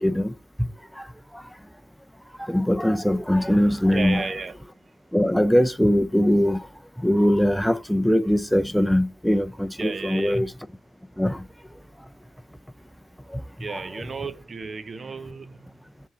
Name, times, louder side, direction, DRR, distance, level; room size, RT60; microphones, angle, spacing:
voice 1, 0.0-0.3 2.5-4.2 5.1-6.6 7.0-10.5 11.2-11.4, equal, ahead, 0.8 m, -21 dB
voice 2, 3.9-5.0 9.8-10.5 11.1-11.2 13.2-13.3 13.6-16.0, right 4 dB, 45° right, 1.0 m, -34 dB
7.0 x 4.2 x 5.8 m
supercardioid pair, 55°, 0 cm